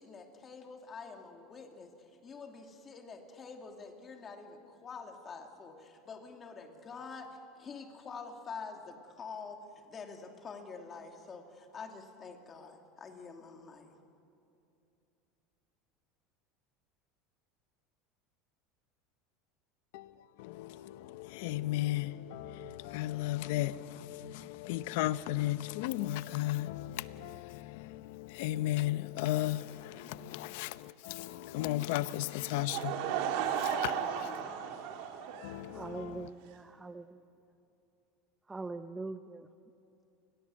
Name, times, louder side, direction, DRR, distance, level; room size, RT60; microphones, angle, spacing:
voice 1, 0.0-1.9 2.2-7.3 7.6-9.6 9.8-14.0, left 5 dB, 25° left, 2.7 m, -47 dB
voice 2, 20.4-32.9 33.6-33.9 34.2-34.3 35.4-36.1, left 15 dB, 75° left, 0.7 m, -35 dB
Laughter / Crowd, 32.5-36.0, right 8 dB, 70° right, 2.7 m, -35 dB
voice 3, 35.7-37.2 38.5-39.5, right 3 dB, 10° right, 0.7 m, -42 dB
29.5 x 21.0 x 7.7 m
supercardioid pair, 145°, 0 cm